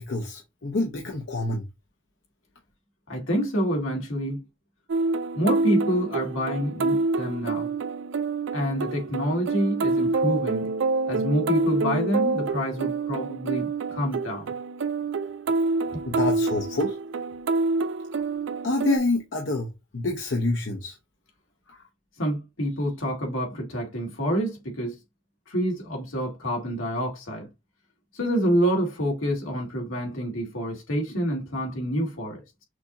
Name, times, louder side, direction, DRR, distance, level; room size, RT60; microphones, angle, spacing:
voice 1, 0.0-1.6 16.1-17.0 18.6-21.0 21.7-21.8, left 2 dB, 65° left, 0.9 m, -27 dB
voice 2, 3.1-4.4 5.4-7.7 8.5-10.7 11.1-14.5 22.2-25.0 25.5-27.5 28.1-32.4, equal, 85° left, 2.2 m, -27 dB
sound 1, 4.9-19.0, right 3 dB, 70° right, 0.4 m, -27 dB
6.2 x 2.7 x 2.9 m
head